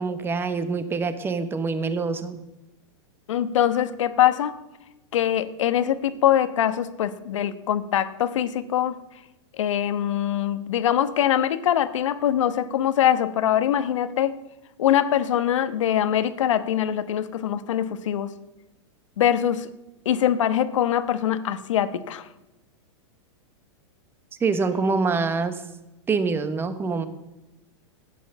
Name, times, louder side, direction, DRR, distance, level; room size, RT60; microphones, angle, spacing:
voice 1, 0.0-2.4 24.4-25.6 26.1-27.1, right 4 dB, 15° right, 11 dB, 1.1 m, -25 dB
voice 2, 3.3-4.6 5.1-8.9 9.6-14.4 14.8-18.3 19.2-19.7 20.0-22.3, left 10 dB, 75° left, 12 dB, 1.1 m, -23 dB
15.0 x 9.6 x 6.9 m, 0.99 s
hypercardioid pair, 140°, 16 cm